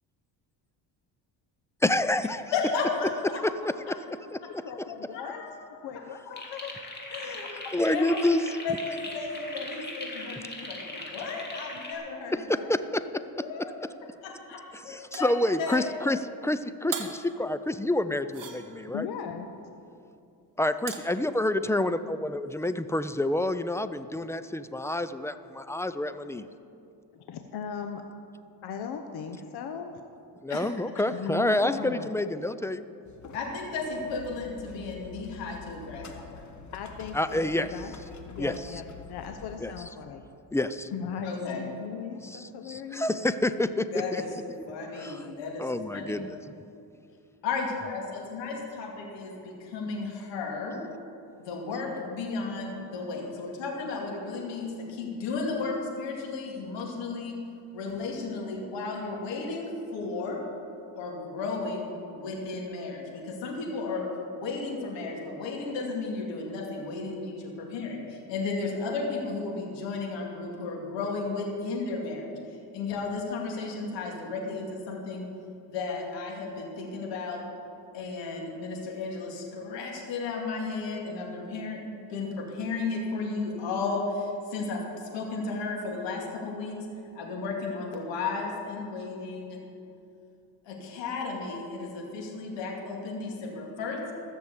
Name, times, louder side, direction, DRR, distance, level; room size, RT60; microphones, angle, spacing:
voice 1, 1.8-2.4 3.6-4.0 4.3-4.6 7.3-7.4 7.7-8.6 12.3-13.0 15.2-19.1 20.6-26.5 30.4-32.9 37.1-37.7 38.4-38.8 39.6-39.7 40.5-40.9 42.2-43.9 44.1-44.2 45.0-45.3 45.6-46.4, left 1 dB, 5° left, 12 dB, 0.4 m, -28 dB
voice 2, 2.5-3.4 5.1-5.5 7.1-7.5 7.9-8.2 8.6-12.7 13.4-13.8 14.9-15.9 30.5-30.6 33.3-36.4 41.2-41.6 43.9-44.3 44.7-46.1 47.4-50.8 51.4-57.4 57.7-60.4 61.0-64.1 64.3-72.3 72.7-75.3 75.7-77.4 77.9-84.8 85.1-86.8 87.1-89.6 90.7-94.0, left 4 dB, 85° left, -1 dB, 2.4 m, -34 dB
voice 3, 4.5-5.4 5.8-6.7 18.9-19.5 27.1-28.0 28.6-30.0 31.1-32.1 36.7-37.9 38.2-40.2 40.9-43.1, left 6 dB, 65° left, 5 dB, 0.9 m, -38 dB
sound 1, 6.3-11.9, left 2 dB, 25° left, 2.6 m, -40 dB
sound 2, 15.1-15.9 16.9-17.3 18.3-19.0 20.9-21.2, right 7 dB, 50° right, 1.5 m, -39 dB
sound 3, 33.0-39.6, left 6 dB, 40° left, 1.4 m, -47 dB
14.0 x 6.9 x 8.1 m, 2.6 s
cardioid pair, 95°, 42 cm